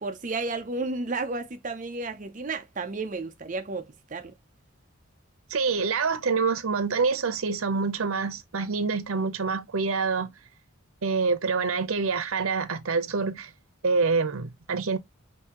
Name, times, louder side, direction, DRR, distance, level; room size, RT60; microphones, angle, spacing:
voice 1, 0.0-4.3, right 3 dB, 35° right, 0.6 m, -32 dB
voice 2, 5.5-10.3 11.0-13.5 13.8-15.0, right 4 dB, 85° right, 0.7 m, -26 dB
5.3 x 2.7 x 2.9 m
head